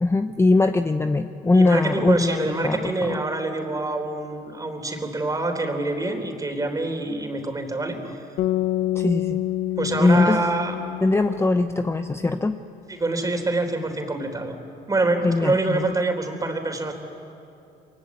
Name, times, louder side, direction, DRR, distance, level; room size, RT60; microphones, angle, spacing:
voice 1, 0.0-3.2 8.9-9.4 10.0-10.4 11.0-12.5 15.2-15.9, left 3 dB, 15° left, 8 dB, 0.8 m, -21 dB
voice 2, 1.5-8.2 9.8-10.8 12.9-14.5 14.9-16.9, right 2 dB, 20° right, 5 dB, 3.8 m, -26 dB
sound 1, 8.4-12.6, left 14 dB, 75° left, 0.9 m, -28 dB
29.5 x 23.0 x 8.5 m, 2.6 s
cardioid pair, 110°, 17 cm